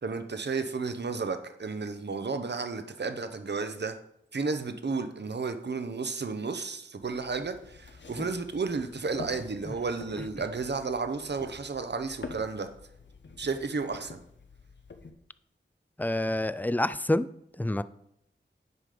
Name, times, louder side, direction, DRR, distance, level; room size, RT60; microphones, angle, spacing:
voice 1, 0.0-4.0 4.3-12.7 13.4-14.2, right 4 dB, 60° right, 0.8 m, -32 dB
sound 1, 7.0-15.1, left 4 dB, 65° left, 0.9 m, -47 dB
voice 2, 16.0-17.3 17.6-17.8, left 1 dB, 10° left, 0.4 m, -27 dB
9.5 x 5.2 x 5.0 m
wide cardioid pair, 50°, 20 cm